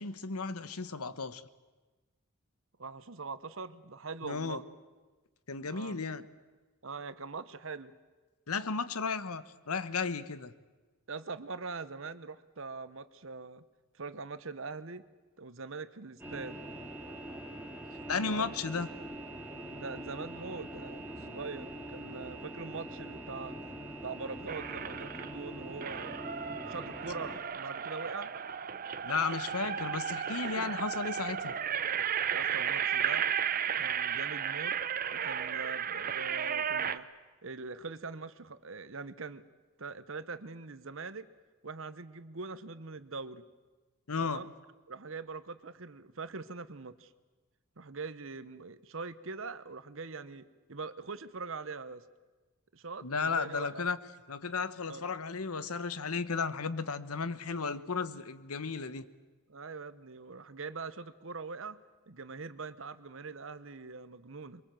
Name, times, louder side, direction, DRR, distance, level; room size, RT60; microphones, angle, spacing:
voice 1, 0.0-1.4 4.2-4.6 5.5-6.2 8.5-10.5 18.1-18.9 29.0-31.5 44.1-44.4 53.0-54.0 54.3-59.0, left 4 dB, 90° left, 14 dB, 1.0 m, -34 dB
voice 2, 2.8-4.6 5.6-6.0 6.8-7.9 11.1-13.6 13.9-15.0 15.4-16.6 18.2-18.5 18.8-18.9 19.7-23.6 24.0-28.3 30.5-30.8 32.3-33.3 33.6-34.8 35.1-37.1 37.4-39.5 39.8-41.3 41.6-43.5 44.2-44.5 44.9-47.1 47.8-52.0 52.7-53.8 54.9-55.1 59.5-64.6, right 4 dB, 65° right, 14 dB, 0.9 m, -43 dB
sound 1, 16.2-27.4, right 1 dB, 10° right, 2.2 m, -43 dB
sound 2, 24.5-25.4 25.8-37.0, right 8 dB, 40° right, 0.7 m, -34 dB
23.5 x 23.0 x 7.5 m, 1.2 s
head